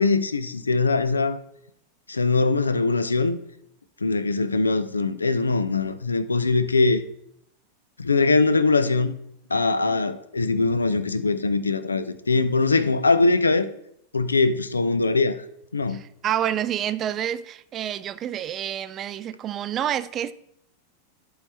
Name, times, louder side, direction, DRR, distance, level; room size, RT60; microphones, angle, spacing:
voice 1, 0.0-1.4 2.1-3.4 4.0-7.0 8.0-9.1 9.5-13.7 14.1-15.4 15.7-16.0, left 3 dB, 75° left, 0.4 m, -22 dB
voice 2, 15.9-20.3, right 10 dB, 30° right, 0.3 m, -28 dB
10.5 x 3.9 x 4.3 m
figure-of-eight pair, 90°, 0 cm